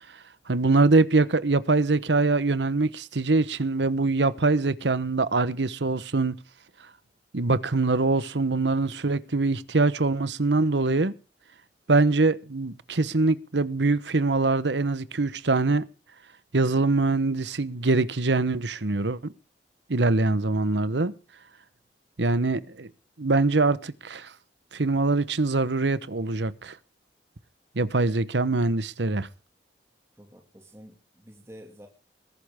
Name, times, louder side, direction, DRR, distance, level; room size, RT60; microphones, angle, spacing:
voice 1, 0.5-6.4 7.3-11.1 11.9-15.8 16.5-19.3 19.9-21.1 22.2-22.9 23.2-24.3 24.7-26.8 27.7-29.3, right 3 dB, 85° right, 1.1 m, -23 dB
voice 2, 30.2-31.9, equal, 15° right, 2.4 m, -49 dB
21.0 x 11.5 x 3.6 m
head